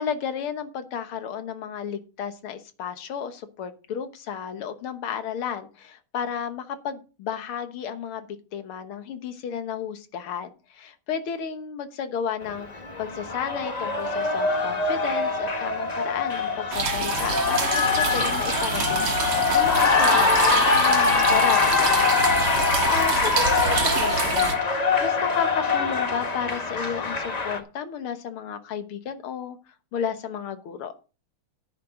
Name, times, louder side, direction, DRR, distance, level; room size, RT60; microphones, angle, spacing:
voice 1, 0.0-8.3 8.5-22.2 22.6-29.6 29.9-30.9, left 7 dB, 80° left, 9 dB, 2.1 m, -33 dB
Cheering, 12.4-27.6, left 4 dB, 30° left, 0.7 m, -23 dB
sound 1, 16.7-24.5, right 6 dB, 90° right, 2.4 m, -28 dB
10.0 x 9.9 x 3.8 m, 0.33 s
omnidirectional pair, 2.3 m